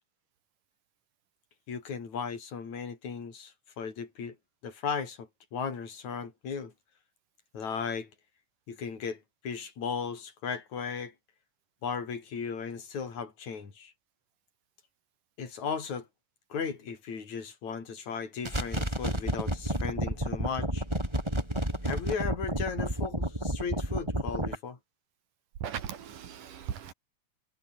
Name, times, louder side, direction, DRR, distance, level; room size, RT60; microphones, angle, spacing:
voice 1, 1.7-4.4 4.6-6.7 7.5-8.1 8.7-11.1 11.8-13.9 15.4-16.1 16.5-20.8 21.8-24.8, left 6 dB, 60° left, 5.7 m, -36 dB
sound 1, 18.4-24.6, right 1 dB, 5° right, 6.2 m, -31 dB
voice 2, 25.6-26.9, right 9 dB, 75° right, 3.9 m, -38 dB
omnidirectional pair, 3.8 m